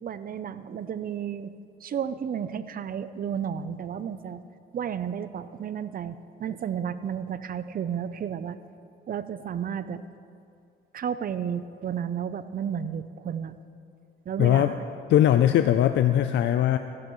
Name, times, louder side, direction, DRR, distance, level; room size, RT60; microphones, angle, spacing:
voice 1, 0.0-1.5 1.8-4.4 4.7-8.6 9.1-10.0 10.9-13.5 14.3-14.8, right 8 dB, 45° right, 13 dB, 0.5 m, -32 dB
voice 2, 14.4-14.8 15.1-16.8, left 11 dB, 70° left, 9 dB, 0.4 m, -20 dB
15.5 x 12.0 x 3.1 m, 2.4 s
cardioid pair, 90°, 20 cm